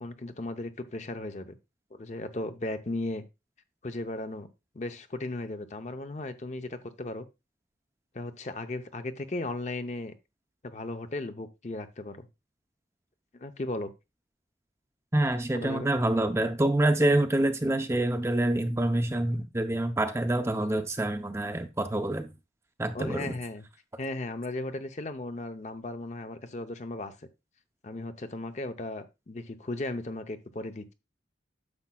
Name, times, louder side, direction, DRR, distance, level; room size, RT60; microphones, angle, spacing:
voice 1, 0.0-1.6 1.9-3.2 3.8-4.5 4.7-7.3 8.1-10.1 10.6-12.3 13.3-13.9 15.5-15.9 22.9-23.6 24.0-27.1 27.8-30.9, left 2 dB, 40° left, 0.6 m, -36 dB
voice 2, 15.1-22.3 22.8-23.4, right 1 dB, 15° right, 0.5 m, -26 dB
9.7 x 7.2 x 2.2 m
head